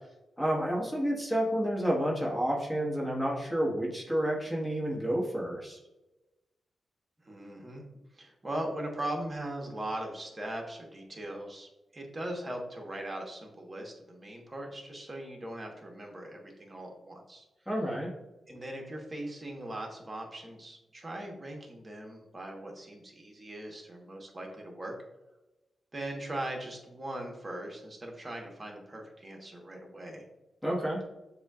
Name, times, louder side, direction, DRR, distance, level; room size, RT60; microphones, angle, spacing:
voice 1, 0.4-5.8 17.7-18.1 30.6-31.0, equal, 5° left, -4 dB, 1.3 m, -30 dB
voice 2, 7.2-7.8 8.1-17.4 18.5-24.9 25.9-30.3, right 1 dB, 30° right, 1 dB, 1.2 m, -40 dB
7.1 x 2.4 x 2.4 m, 1.0 s
cardioid pair, 60°, 0 cm